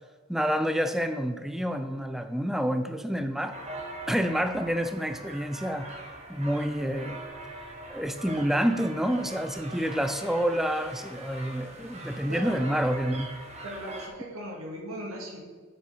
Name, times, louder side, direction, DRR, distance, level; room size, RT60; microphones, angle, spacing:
voice 1, 0.3-3.6 4.1-5.9 6.3-7.2 7.9-13.3, equal, ahead, 9 dB, 0.4 m, -28 dB
sound 1, 3.5-14.1, right 2 dB, 30° right, 1.2 m, -42 dB
voice 2, 12.3-12.6 13.6-15.4, equal, 75° right, 0 dB, 2.1 m, -38 dB
7.5 x 6.7 x 5.6 m, 1.5 s
head